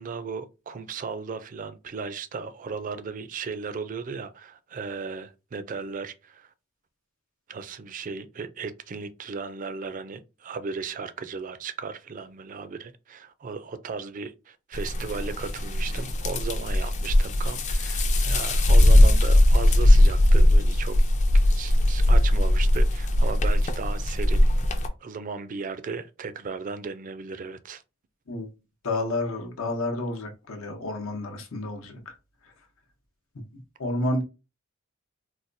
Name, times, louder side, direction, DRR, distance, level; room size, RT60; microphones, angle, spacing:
voice 1, 0.0-6.5 7.5-21.0 21.3-27.8, right 5 dB, 40° right, 0.4 m, -36 dB
sound 1, 14.7-24.9, left 1 dB, 35° left, 0.4 m, -20 dB
voice 2, 28.8-32.2 32.4-32.5 33.3-34.2, left 2 dB, 80° left, 0.9 m, -30 dB
4.1 x 2.2 x 2.5 m
head